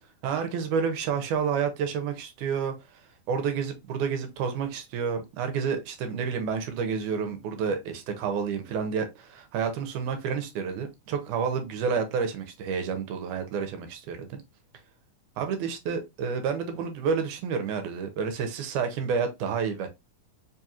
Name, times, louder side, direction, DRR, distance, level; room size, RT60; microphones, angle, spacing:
voice 1, 0.2-2.7 3.3-14.4 15.4-19.9, right 6 dB, 85° right, 2.1 m, -29 dB
4.8 x 2.4 x 2.7 m
omnidirectional pair, 3.6 m